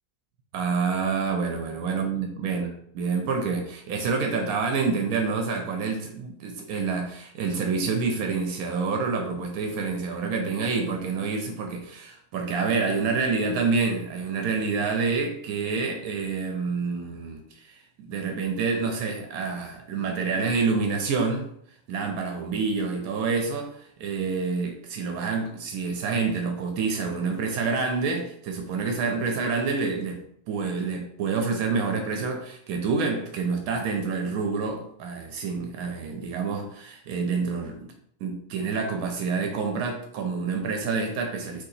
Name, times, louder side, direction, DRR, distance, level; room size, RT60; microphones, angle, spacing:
voice 1, 0.5-21.5 21.9-30.2 30.5-37.8 38.2-41.6, right 4 dB, 85° right, 3 dB, 1.1 m, -28 dB
3.1 x 2.8 x 3.9 m, 0.67 s
omnidirectional pair, 1.5 m